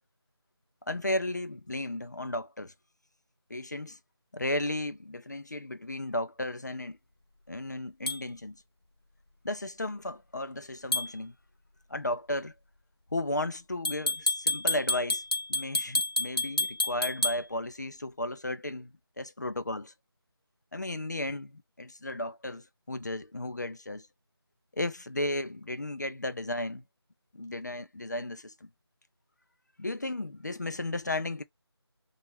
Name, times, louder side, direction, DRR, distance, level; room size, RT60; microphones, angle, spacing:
voice 1, 0.9-2.7 3.5-4.0 4.3-7.0 7.5-8.6 9.4-11.3 11.9-12.5 13.1-15.2 15.5-18.9 19.2-19.9 20.7-24.1 24.7-26.8 27.3-28.7 29.8-31.4, left 1 dB, 40° left, 0.4 m, -34 dB
sound 1, 8.1-8.2 10.9-11.1 13.8-17.4, left 2 dB, 60° left, 0.9 m, -29 dB
3.0 x 2.3 x 2.9 m
figure-of-eight pair, 170°, 14 cm